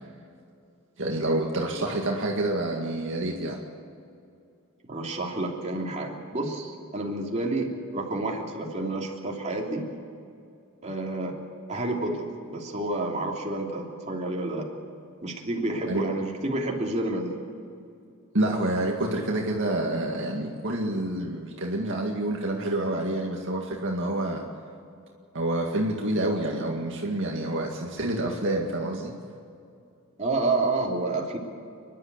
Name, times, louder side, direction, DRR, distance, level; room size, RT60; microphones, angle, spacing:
voice 1, 1.0-3.6 15.9-16.0 18.3-24.4 25.3-29.1, right 1 dB, 60° right, -1 dB, 2.1 m, -28 dB
voice 2, 4.8-9.9 10.8-11.3 11.7-14.7 15.2-17.4 30.2-31.4, right 2 dB, 30° right, -1 dB, 3.1 m, -29 dB
29.5 x 11.5 x 8.3 m, 2.5 s
head